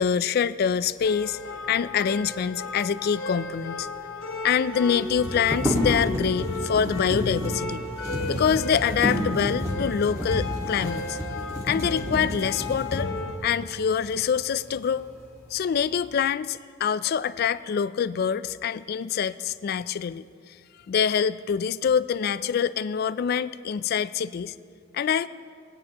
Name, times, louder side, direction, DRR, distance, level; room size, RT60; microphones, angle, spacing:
voice 1, 0.0-1.4 1.7-3.9 4.4-7.8 8.3-11.2 11.6-13.1 13.4-15.1 15.5-20.2 20.9-24.6 24.9-25.3, left 7 dB, 50° left, 15 dB, 0.3 m, -25 dB
sound 1, 1.0-13.4, left 2 dB, 90° left, 1.2 m, -35 dB
sound 2, 3.5-3.6 3.8-3.9 5.0-13.3 14.0-14.1 14.6-15.2 15.6-16.1, equal, 15° right, 1.8 m, -30 dB
19.5 x 9.3 x 2.9 m, 2.2 s
head